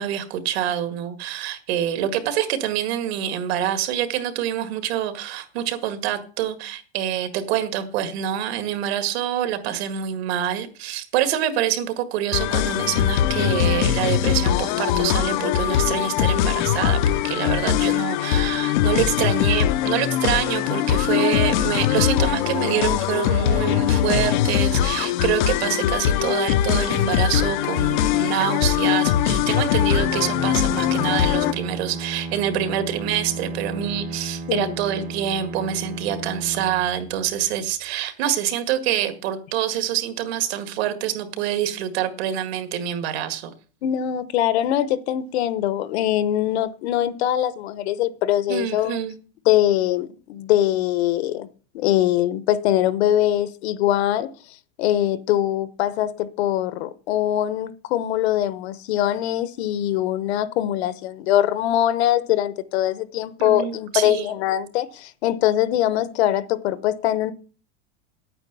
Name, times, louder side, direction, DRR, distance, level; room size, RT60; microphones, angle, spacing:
voice 1, 0.0-17.0 17.2-43.5 48.5-49.2 63.4-64.3, right 10 dB, 60° right, 2.0 m, -26 dB
sound 1, 12.3-31.5, left 11 dB, 40° left, 0.6 m, -21 dB
Bowed string instrument, 29.7-37.7, right 3 dB, 40° right, 1.2 m, -34 dB
voice 2, 43.8-49.0 49.4-51.5 51.7-54.3 54.8-67.3, left 12 dB, 60° left, 1.0 m, -22 dB
10.0 x 9.0 x 6.8 m
supercardioid pair, 175°, 36 cm